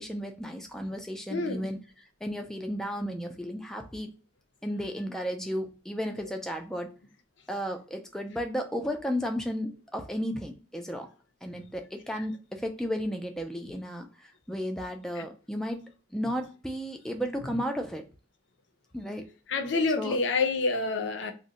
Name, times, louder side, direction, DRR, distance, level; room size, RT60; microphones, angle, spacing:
voice 1, 0.0-1.8 2.2-4.1 4.6-6.9 7.5-11.1 11.4-15.8 16.1-18.0 18.9-19.3 20.0-20.2, equal, 5° left, 0.3 m, -33 dB
voice 2, 1.3-1.7 15.2-15.3 19.5-21.3, left 3 dB, 75° left, 0.5 m, -28 dB
2.6 x 2.1 x 3.8 m
head